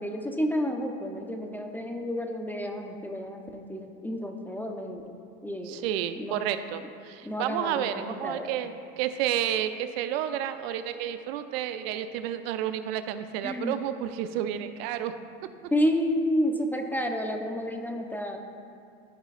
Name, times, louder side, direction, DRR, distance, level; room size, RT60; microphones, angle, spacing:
voice 1, 0.0-5.2 5.4-5.9 6.2-6.4 7.2-8.5 13.4-13.8 15.7-18.4, equal, 5° left, 4 dB, 0.5 m, -30 dB
voice 2, 5.7-15.1, right 10 dB, 70° right, 10 dB, 0.5 m, -31 dB
14.0 x 5.1 x 2.4 m, 2.5 s
supercardioid pair, 110°, 31 cm